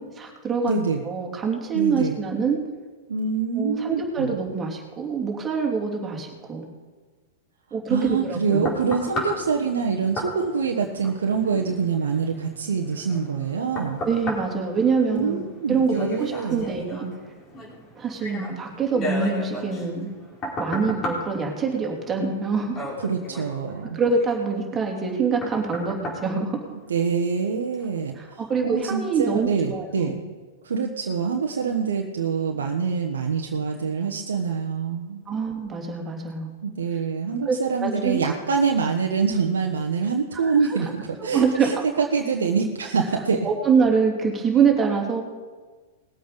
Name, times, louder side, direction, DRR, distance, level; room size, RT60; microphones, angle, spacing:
voice 1, 0.2-0.8 1.0-2.6 3.6-6.7 7.7-8.7 14.0-15.4 15.7-17.1 17.9-20.1 20.6-22.9 23.9-26.6 28.2-30.2 35.3-36.5 37.5-37.6 37.8-38.2 40.7-40.8 41.3-41.8 43.4-45.2, right 5 dB, 20° right, 0 dB, 3.1 m, -25 dB
voice 2, 0.7-1.0 1.7-2.2 3.1-4.4 7.9-14.0 15.1-16.6 23.0-24.0 26.9-30.2 30.6-35.2 36.6-43.5, right 5 dB, 80° right, 2 dB, 1.2 m, -25 dB
sound 1, 8.0-27.2 27.7-27.9, equal, 30° left, 4.5 m, -36 dB
20.0 x 8.0 x 5.3 m, 1.4 s
hypercardioid pair, 105°, 0 cm